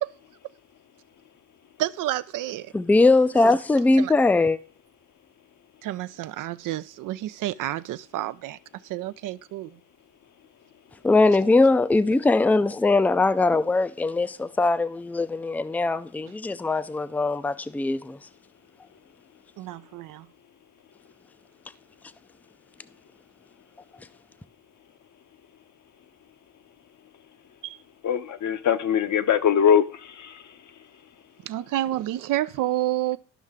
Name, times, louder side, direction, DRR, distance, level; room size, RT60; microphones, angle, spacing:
voice 1, 1.8-2.7 4.0-4.1 5.8-8.6 8.8-9.8 19.6-20.3 27.6-27.8 31.5-33.2, right 14 dB, 60° right, 0.5 m, -29 dB
voice 2, 2.7-4.6 11.0-18.2, left 3 dB, 5° left, 0.4 m, -21 dB
voice 3, 28.0-30.4, left 8 dB, 50° left, 0.9 m, -22 dB
12.0 x 5.5 x 3.6 m
supercardioid pair, 65°, 37 cm